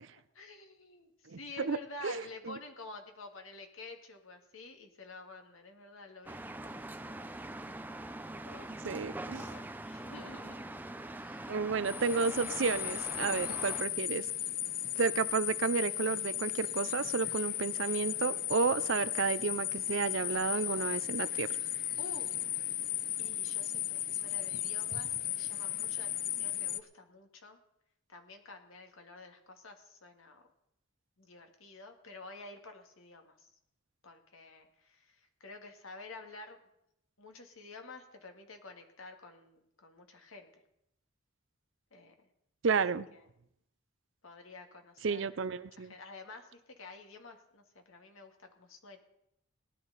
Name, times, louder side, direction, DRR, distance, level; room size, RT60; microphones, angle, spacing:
voice 1, 0.0-7.4 8.4-8.8 9.3-10.8 11.2-11.6 13.4-13.6 22.0-22.5 23.2-27.6 28.1-30.4 31.2-33.5 34.0-36.6 37.2-40.5 41.9-42.1 43.1-43.3 44.2-45.3 45.7-49.0, left 3 dB, 75° left, 4 dB, 1.9 m, -50 dB
voice 2, 1.3-1.8 2.0-2.5 8.8-9.4 11.5-14.3 15.0-21.5 42.6-43.1 45.0-45.9, right 5 dB, 60° right, 15 dB, 0.5 m, -32 dB
sound 1, 6.3-13.8, right 1 dB, 10° right, 0.5 m, -43 dB
sound 2, 11.9-26.8, left 12 dB, 40° left, 0.5 m, -36 dB
18.5 x 11.0 x 4.0 m, 0.79 s
head